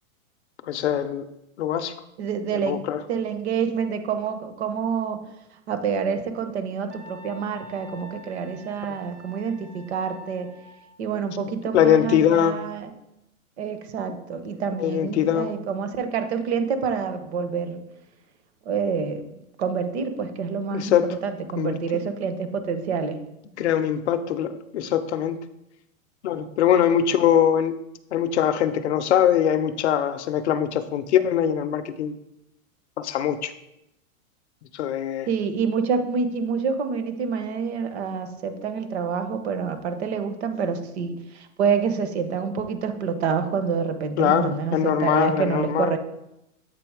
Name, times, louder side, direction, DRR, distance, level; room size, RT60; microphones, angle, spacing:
voice 1, 0.6-1.2 1.6-1.9 2.6-3.0 11.7-12.6 14.8-15.5 20.7-21.2 21.6-22.0 23.6-25.4 26.2-27.8 28.1-32.2 33.0-33.5 34.7-35.3 44.2-45.9, left 9 dB, 55° left, 11 dB, 0.5 m, -22 dB
voice 2, 2.2-5.2 5.7-10.5 11.0-12.9 13.6-17.8 18.7-19.3 19.6-21.0 21.2-23.2 35.3-46.0, right 6 dB, 50° right, 9 dB, 0.8 m, -27 dB
Wind instrument woodwind instrument, 6.9-11.0, equal, 15° right, 0.4 m, -47 dB
7.7 x 3.5 x 4.7 m, 0.86 s
supercardioid pair, 175°, 43 cm